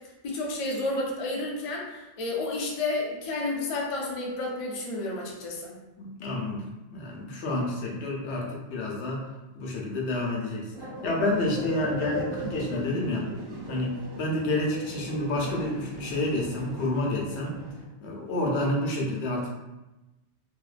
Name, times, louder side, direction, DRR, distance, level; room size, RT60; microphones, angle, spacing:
voice 1, 0.2-5.7, left 2 dB, 55° left, -2 dB, 0.3 m, -31 dB
voice 2, 6.0-6.6 6.9-9.2 9.5-13.3 13.7-17.6 18.0-19.5, left 1 dB, 75° left, -2 dB, 0.8 m, -29 dB
sound 1, 10.7-17.8, right 1 dB, 60° right, 0.7 m, -38 dB
2.6 x 2.1 x 2.4 m, 1.0 s
omnidirectional pair, 1.2 m